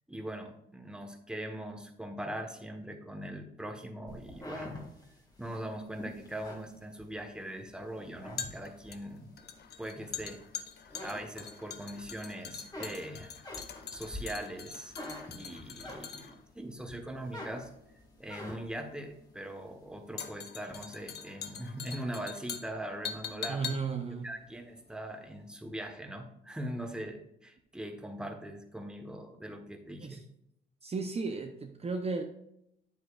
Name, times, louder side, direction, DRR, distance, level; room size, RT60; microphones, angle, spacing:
voice 1, 0.1-4.8 5.4-9.3 9.8-10.4 11.0-14.9 15.3-17.7 18.2-23.7 24.2-30.2, right 1 dB, 5° right, 3 dB, 1.3 m, -41 dB
sound 1, 4.1-7.5 7.9-9.0 9.5-10.5 10.8-12.1 12.4-16.4 16.9-18.8, left 1 dB, 20° left, 2.0 m, -46 dB
sound 2, 6.2-25.5 25.8-25.9, left 7 dB, 55° left, 0.8 m, -44 dB
voice 2, 23.5-24.3 30.0-30.2 30.8-32.2, right 4 dB, 30° right, 3 dB, 0.8 m, -34 dB
9.3 x 8.0 x 2.5 m, 0.77 s
cardioid pair, 90°, 20 cm